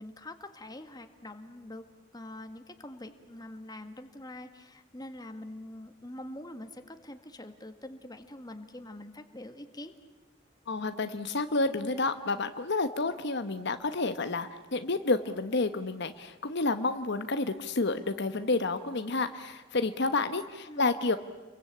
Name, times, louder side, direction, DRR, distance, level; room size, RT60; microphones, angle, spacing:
voice 1, 0.0-1.9 2.1-9.9 20.7-20.9, left 1 dB, 20° left, 8 dB, 1.8 m, -44 dB
voice 2, 10.7-21.2, left 3 dB, 60° left, 9 dB, 1.1 m, -30 dB
29.5 x 22.5 x 8.6 m, 1.2 s
head